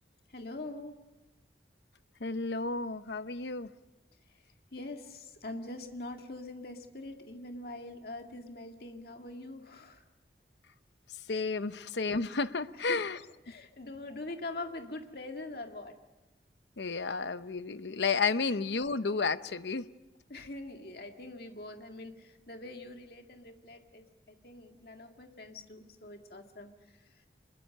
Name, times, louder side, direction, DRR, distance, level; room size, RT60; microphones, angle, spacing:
voice 1, 0.3-1.0 4.7-10.0 12.9-13.0 13.5-16.0 20.3-26.7, left 2 dB, 60° left, 4 dB, 2.0 m, -43 dB
voice 2, 2.2-3.7 11.1-13.2 16.8-19.9, left 4 dB, 75° left, 13 dB, 0.8 m, -32 dB
26.0 x 21.5 x 6.7 m, 1.0 s
head